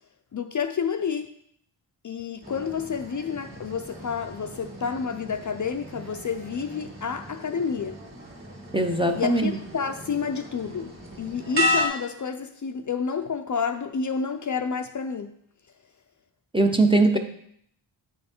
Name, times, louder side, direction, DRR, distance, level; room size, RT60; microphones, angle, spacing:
voice 1, 0.3-1.3 2.0-8.0 9.1-15.4, left 6 dB, 45° left, 0.4 m, -29 dB
sound 1, 2.4-11.9, left 1 dB, 25° right, 1.9 m, -34 dB
voice 2, 8.7-9.5 16.5-17.2, right 2 dB, 10° right, 0.5 m, -20 dB
9.1 x 5.5 x 4.3 m
wide cardioid pair, 145°, 46 cm